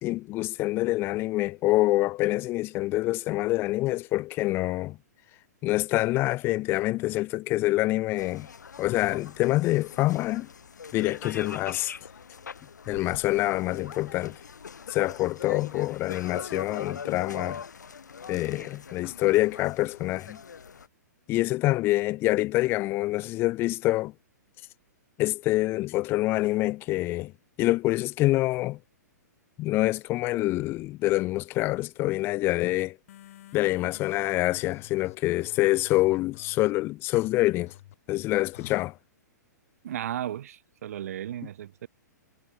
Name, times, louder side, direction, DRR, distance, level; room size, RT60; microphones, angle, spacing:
voice 1, 0.0-5.0 5.6-8.5 8.8-10.5 10.9-11.9 12.9-14.4 14.9-17.6 18.3-20.4 21.3-24.1 25.2-27.3 27.6-28.8 29.6-33.0 33.5-37.7 38.1-38.9, left 18 dB, 25° left, 0.4 m, -26 dB
sound 1, 8.2-20.9, left 6 dB, 75° left, 0.7 m, -42 dB
sound 2, 33.1-36.7 37.2-37.3 37.7-37.9 38.5-38.8, left 13 dB, 50° left, 6.7 m, -49 dB
voice 2, 39.8-41.9, right 11 dB, 55° right, 1.2 m, -35 dB
figure-of-eight pair, 115°, 10 cm